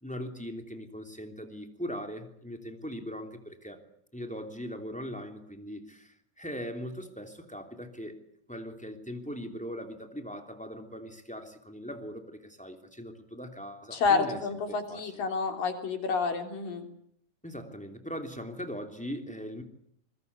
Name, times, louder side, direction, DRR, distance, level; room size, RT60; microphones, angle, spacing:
voice 1, 0.0-3.8 4.1-8.2 8.5-14.4 14.7-15.3 17.4-19.6, equal, ahead, 5 dB, 2.5 m, -40 dB
voice 2, 13.9-16.9, left 4 dB, 70° left, 5 dB, 5.1 m, -29 dB
25.0 x 22.5 x 8.4 m, 0.71 s
omnidirectional pair, 4.2 m